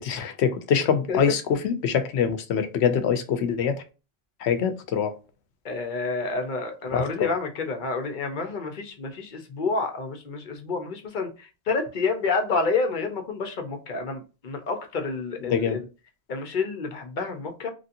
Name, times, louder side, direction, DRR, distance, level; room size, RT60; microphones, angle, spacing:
voice 1, 0.0-3.8 4.4-5.1 6.9-7.3 15.5-15.8, left 7 dB, 90° left, 0.9 m, -24 dB
voice 2, 5.6-15.9 16.3-17.7, left 4 dB, 55° left, 0.8 m, -29 dB
3.1 x 2.7 x 2.5 m
omnidirectional pair, 1.1 m